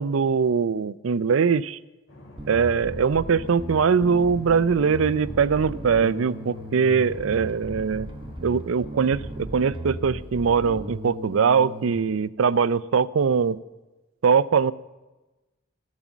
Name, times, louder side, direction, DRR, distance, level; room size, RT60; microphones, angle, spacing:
voice 1, 0.0-1.8 2.5-8.1 8.4-13.6 14.2-14.7, right 6 dB, 85° right, 18 dB, 0.5 m, -22 dB
sound 1, 2.1-9.6, left 1 dB, 65° left, 3.1 m, -47 dB
Bass guitar, 2.4-12.0, right 1 dB, 25° right, 0.9 m, -36 dB
13.0 x 12.5 x 7.2 m, 1.1 s
head